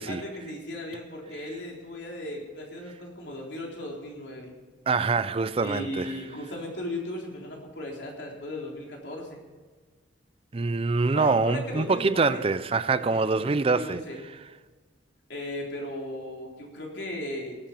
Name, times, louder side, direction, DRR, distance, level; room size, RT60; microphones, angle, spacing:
voice 1, 0.1-4.5 5.6-9.4 11.1-12.4 13.0-14.2 15.3-17.6, left 1 dB, 65° left, 3.7 m, -37 dB
voice 2, 4.9-6.2 10.5-14.0, right 4 dB, 30° right, 0.4 m, -25 dB
18.0 x 9.0 x 5.9 m
head